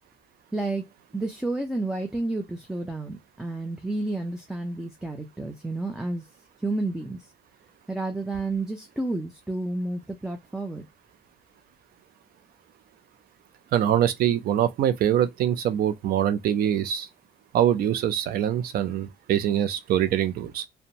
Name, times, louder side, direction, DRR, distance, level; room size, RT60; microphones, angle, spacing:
voice 1, 0.5-0.8 1.1-6.2 6.6-7.2 7.9-10.9, right 2 dB, 5° right, 0.4 m, -30 dB
voice 2, 13.7-17.1 17.5-20.7, right 10 dB, 65° right, 0.5 m, -24 dB
2.5 x 2.2 x 2.8 m
cardioid pair, 110°, 17 cm